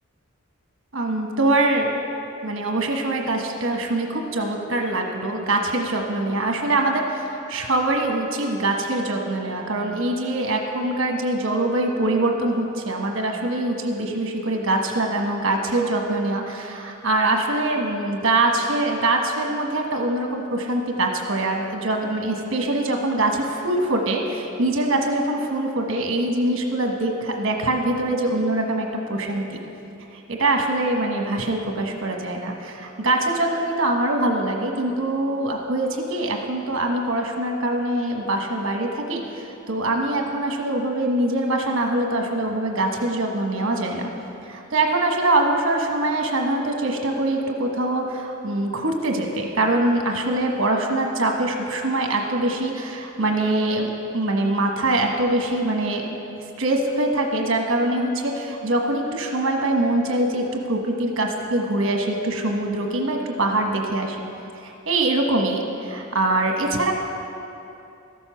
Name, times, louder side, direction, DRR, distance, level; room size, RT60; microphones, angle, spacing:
voice 1, 0.9-1.9 2.4-29.6 30.3-44.1 44.5-56.2 56.6-64.2 64.6-66.9, right 2 dB, 65° right, 2 dB, 1.3 m, -23 dB
sound 1, 15.7-17.8, right 3 dB, 35° right, 1.4 m, -34 dB
13.5 x 7.0 x 5.7 m, 2.8 s
head